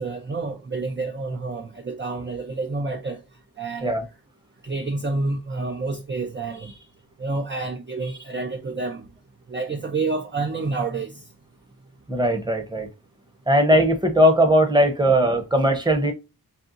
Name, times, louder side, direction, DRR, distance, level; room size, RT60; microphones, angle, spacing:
voice 1, 0.0-3.2 3.6-3.9 4.6-6.9 7.2-9.1 9.5-11.3, right 3 dB, 30° right, 0.6 m, -29 dB
voice 2, 12.1-12.9 13.5-16.1, equal, 10° right, 1.0 m, -19 dB
4.2 x 3.5 x 2.5 m
wide cardioid pair, 95°, 37 cm